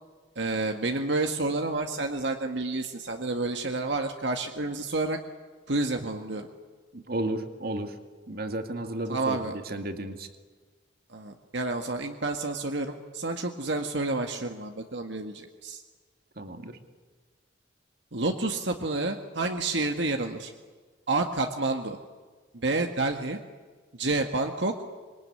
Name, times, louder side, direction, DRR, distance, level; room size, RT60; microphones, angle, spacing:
voice 1, 0.4-5.2 5.7-6.5 9.1-9.6 11.1-15.8 18.1-20.5 21.1-22.0 22.5-23.4 23.9-24.7, right 2 dB, 70° right, 4 dB, 1.8 m, -29 dB
voice 2, 6.9-8.0 8.3-10.3 16.4-16.8, right 1 dB, 55° right, 6 dB, 2.3 m, -33 dB
26.0 x 23.0 x 9.8 m, 1.5 s
head